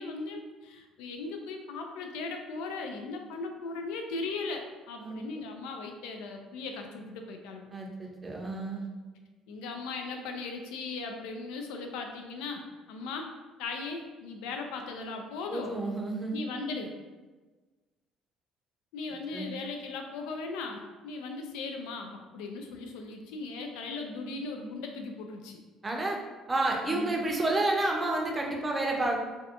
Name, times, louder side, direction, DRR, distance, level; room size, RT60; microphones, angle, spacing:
voice 1, 0.0-7.7 9.5-13.3 13.6-15.7 16.3-16.9 18.9-25.6 26.8-27.3, left 3 dB, 85° left, 4 dB, 0.3 m, -38 dB
voice 2, 7.7-8.9 15.5-16.3 19.3-19.5 25.8-26.2 26.5-29.2, right 2 dB, 20° right, 0 dB, 0.5 m, -30 dB
2.6 x 2.2 x 2.5 m, 1.3 s
supercardioid pair, 85°, 0 cm